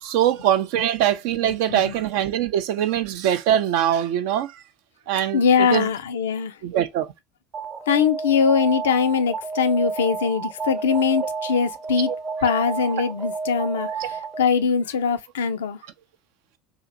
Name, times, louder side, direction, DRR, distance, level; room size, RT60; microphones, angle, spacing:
voice 1, 0.0-4.5 5.1-5.9 6.6-7.1 12.1-12.2 12.4-12.5 14.0-14.1, right 10 dB, 60° right, 0.4 m, -22 dB
voice 2, 5.3-6.6 7.9-12.1 12.4-15.8, left 6 dB, 75° left, 0.4 m, -22 dB
Alarm, 7.5-14.6, right 4 dB, 40° right, 0.8 m, -31 dB
2.8 x 2.5 x 2.5 m
figure-of-eight pair, 70°, 0 cm